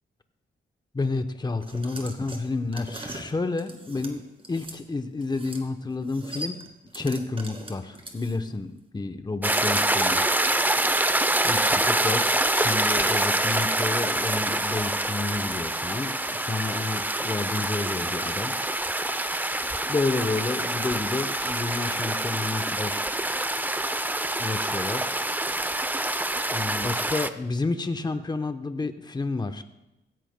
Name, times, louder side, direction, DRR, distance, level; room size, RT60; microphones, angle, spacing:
voice 1, 0.9-6.6 6.9-10.2 11.4-18.6 18.8-19.0 19.9-23.1 24.4-25.3 26.5-29.6, left 3 dB, 20° left, 8 dB, 0.8 m, -30 dB
sound 1, 1.6-4.8 5.2-5.7 5.9-8.6, right 2 dB, 30° right, 2.1 m, -40 dB
sound 2, 9.4-27.3, right 1 dB, 10° right, 0.5 m, -26 dB
17.0 x 13.5 x 2.2 m, 0.94 s
cardioid pair, 75°, 20 cm